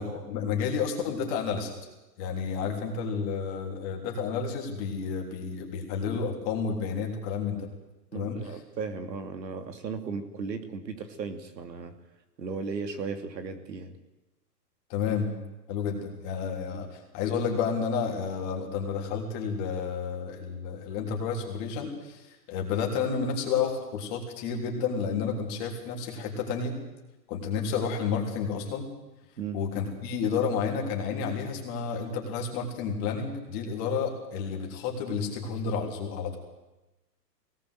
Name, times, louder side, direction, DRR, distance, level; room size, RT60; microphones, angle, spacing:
voice 1, 0.0-1.7 2.2-7.7 8.1-8.5 14.9-15.3 15.7-26.8 27.3-28.8 29.5-36.4, left 6 dB, 25° left, 1 dB, 3.4 m, -31 dB
voice 2, 8.1-12.0 12.4-14.0 16.7-16.8 29.4-29.6, right 5 dB, 80° right, 7 dB, 2.9 m, -36 dB
21.5 x 18.5 x 8.2 m, 1.0 s
hypercardioid pair, 160°, 50 cm